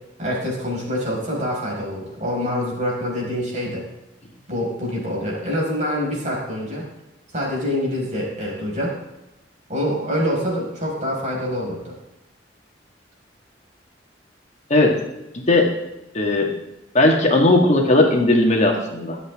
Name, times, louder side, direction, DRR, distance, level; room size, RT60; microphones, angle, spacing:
voice 1, 0.2-3.8 4.5-6.8 7.3-8.9 9.7-11.9, equal, 40° right, -3 dB, 5.3 m, -25 dB
voice 2, 16.1-16.5 16.9-19.2, left 2 dB, 40° left, 1 dB, 1.9 m, -17 dB
23.5 x 8.2 x 3.6 m, 0.95 s
head